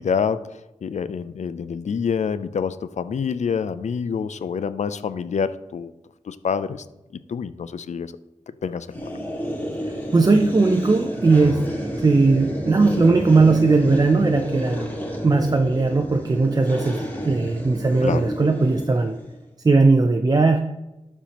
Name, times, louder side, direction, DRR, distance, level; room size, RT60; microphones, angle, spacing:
voice 1, 0.0-5.9 6.3-6.9 7.3-8.1 8.6-9.0 18.0-18.3, left 6 dB, 70° left, 13 dB, 0.4 m, -27 dB
sound 1, 8.9-19.4, equal, 15° left, 1.8 m, -30 dB
voice 2, 10.1-11.6 12.0-14.9 15.2-19.2 19.6-20.6, right 3 dB, 30° right, 6 dB, 0.5 m, -18 dB
12.0 x 4.4 x 2.9 m, 0.98 s
wide cardioid pair, 80°, 12 cm